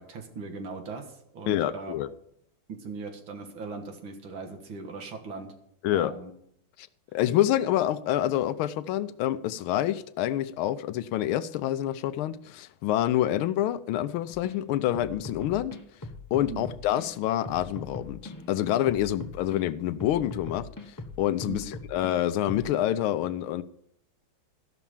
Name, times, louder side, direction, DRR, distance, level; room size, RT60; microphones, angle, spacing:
voice 1, 0.0-1.9 2.7-5.5 5.9-6.3 16.5-16.7 21.5-21.7, right 4 dB, 70° right, 2.4 m, -39 dB
voice 2, 1.5-2.1 5.8-6.1 6.8-6.9 7.1-15.8 16.3-23.6, left 12 dB, 85° left, 1.5 m, -27 dB
sound 1, 14.3-14.6 14.9-17.1 17.4-19.6 20.0-22.1 22.5-22.7, left 2 dB, 30° left, 0.3 m, -41 dB
13.5 x 5.9 x 7.1 m
omnidirectional pair, 2.3 m